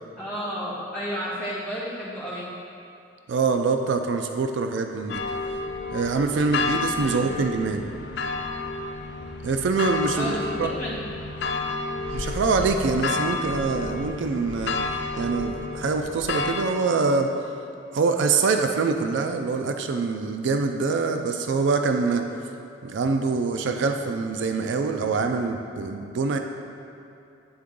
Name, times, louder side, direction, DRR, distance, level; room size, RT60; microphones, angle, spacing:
voice 1, 0.2-2.5 7.0-7.3 10.1-10.5 10.8-11.0, equal, 10° left, -10 dB, 1.5 m, -32 dB
voice 2, 3.3-5.2 5.9-7.8 9.4-10.7 12.1-14.7 15.2-17.3 17.9-22.2 22.8-26.4, right 4 dB, 75° right, 5 dB, 0.4 m, -24 dB
sound 1, 5.1-16.7, left 3 dB, 60° left, 0.4 m, -30 dB
8.7 x 3.8 x 3.6 m, 2.7 s
head